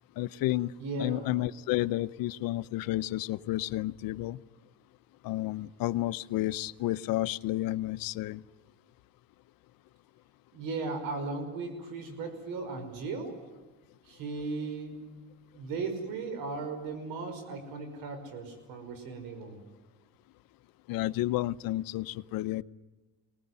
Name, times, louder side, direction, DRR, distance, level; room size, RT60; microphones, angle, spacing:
voice 1, 0.2-0.7 1.0-4.4 5.2-8.4 20.9-22.6, left 16 dB, 80° left, 16 dB, 0.8 m, -31 dB
voice 2, 0.8-1.4 10.5-13.4 14.1-15.0 15.5-19.6, right 3 dB, 90° right, 7 dB, 5.4 m, -36 dB
24.0 x 19.5 x 9.7 m, 1.2 s
cardioid pair, 95°, 34 cm